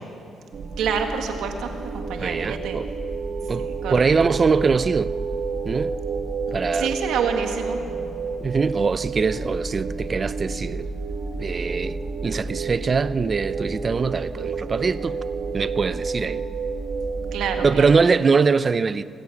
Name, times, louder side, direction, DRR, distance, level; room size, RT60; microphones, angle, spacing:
sound 1, 0.5-18.0, right 4 dB, 55° right, 1.8 m, -30 dB
voice 1, 0.8-2.8 3.6-4.1 6.7-7.8 17.3-17.9, right 6 dB, 80° right, 1.8 m, -28 dB
voice 2, 2.2-2.8 3.5-5.1 5.6-6.0 6.5-6.9 8.4-10.8 11.4-15.2 15.5-16.4 17.6-19.0, right 5 dB, 35° right, 0.6 m, -22 dB
25.0 x 14.5 x 7.2 m
cardioid pair, 90°, 0 cm